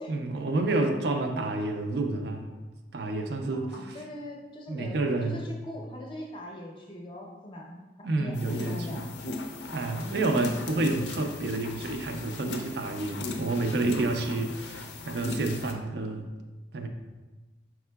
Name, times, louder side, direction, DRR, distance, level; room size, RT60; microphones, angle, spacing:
voice 1, 0.1-2.5 2.9-3.7 4.7-5.4 8.0-9.1 9.7-16.3 16.7-16.9, right 2 dB, 70° right, 5 dB, 0.4 m, -29 dB
voice 2, 3.5-7.8 8.2-9.0, equal, 25° left, -1 dB, 0.5 m, -41 dB
sound 1, 8.3-15.7, left 2 dB, 80° left, 0.4 m, -38 dB
4.7 x 3.6 x 2.2 m, 1.2 s
head